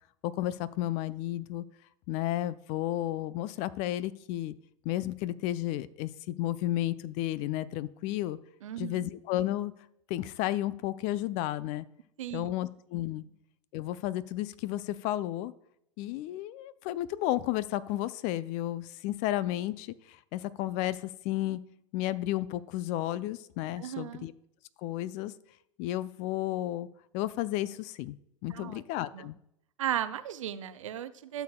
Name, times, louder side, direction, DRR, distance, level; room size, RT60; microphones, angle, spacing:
voice 1, 0.2-1.6 2.1-4.5 4.8-8.4 8.8-9.7 10.1-11.9 12.3-13.2 13.7-15.5 16.0-21.6 21.9-24.3 24.8-25.3 25.8-26.9 27.1-28.2 28.4-29.4, left 14 dB, 45° left, 17 dB, 0.5 m, -32 dB
voice 2, 8.6-9.1 12.2-12.5 23.8-24.3 28.5-28.8 29.1-29.3 29.8-31.4, right 11 dB, 75° right, 13 dB, 0.6 m, -36 dB
12.0 x 6.9 x 2.3 m, 0.76 s
hypercardioid pair, 95°, 17 cm